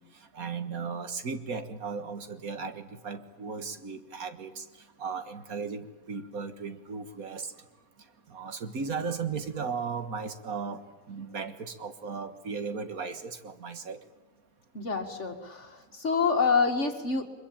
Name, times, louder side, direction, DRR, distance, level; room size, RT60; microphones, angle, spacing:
voice 1, 0.0-4.7 5.0-7.5 8.3-10.8 11.1-14.0, right 5 dB, 80° right, 9 dB, 2.0 m, -36 dB
voice 2, 14.7-17.2, left 5 dB, 55° left, 5 dB, 2.3 m, -27 dB
24.5 x 22.5 x 8.8 m, 1.1 s
omnidirectional pair, 1.5 m